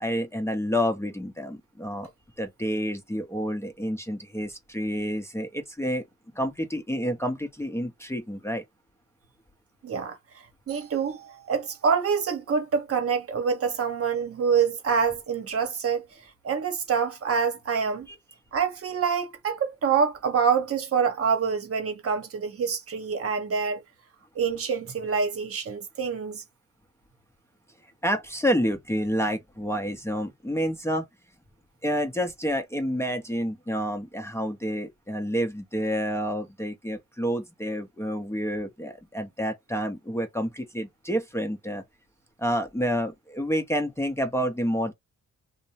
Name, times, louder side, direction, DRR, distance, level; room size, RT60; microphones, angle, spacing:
voice 1, 0.0-2.1 2.4-6.0 6.3-8.6 18.1-18.2 28.0-31.0 31.8-41.8 42.4-44.9, equal, 10° left, 0.6 m, -29 dB
voice 2, 9.8-10.2 10.7-16.0 16.4-18.1 18.5-23.8 24.3-26.4, right 6 dB, 50° right, 1.0 m, -26 dB
2.6 x 2.1 x 2.8 m
cardioid pair, 90°, 30 cm